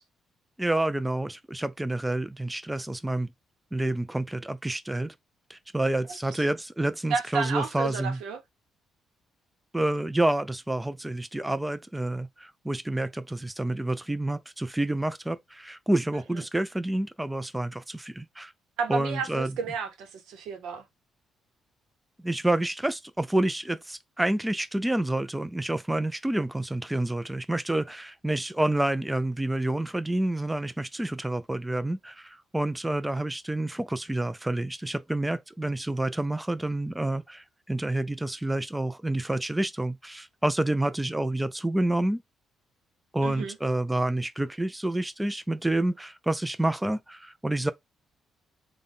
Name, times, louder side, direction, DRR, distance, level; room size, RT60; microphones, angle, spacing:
voice 1, 0.6-3.3 3.7-5.1 5.5-8.2 9.7-18.5 18.9-19.6 22.2-42.2 43.1-47.7, right 1 dB, 10° right, 0.3 m, -28 dB
voice 2, 7.1-8.4 16.3-16.4 18.8-20.8 43.2-43.6, right 5 dB, 85° right, 0.8 m, -31 dB
3.5 x 2.2 x 3.7 m
cardioid pair, 90°, 0 cm